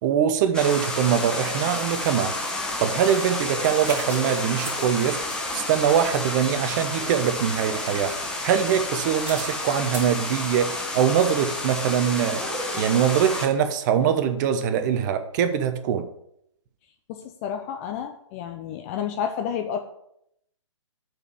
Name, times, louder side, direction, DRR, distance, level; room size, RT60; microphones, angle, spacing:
voice 1, 0.0-2.4 2.8-5.2 5.5-8.2 8.4-12.4 12.8-16.0, right 8 dB, 35° right, 9 dB, 0.9 m, -23 dB
sound 1, 0.5-13.5, left 2 dB, 5° left, 1.1 m, -30 dB
Stone hitting tree, 1.8-10.1, right 1 dB, 10° right, 3.1 m, -44 dB
voice 2, 17.1-19.8, left 8 dB, 30° left, 6 dB, 0.6 m, -30 dB
8.0 x 4.6 x 7.1 m, 0.76 s
hypercardioid pair, 135°, 16 cm